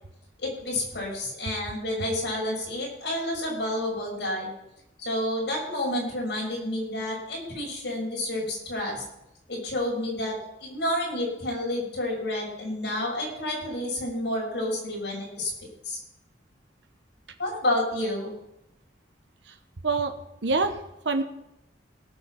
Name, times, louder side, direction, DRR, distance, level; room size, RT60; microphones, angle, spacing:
voice 1, 0.4-4.5 5.0-9.0 9.5-15.5 15.8-16.0 17.4-18.3, left 1 dB, 65° left, -3 dB, 6.0 m, -30 dB
voice 2, 19.8-20.1 20.4-21.2, right 3 dB, 80° right, 7 dB, 1.0 m, -26 dB
17.5 x 6.4 x 5.7 m, 0.85 s
head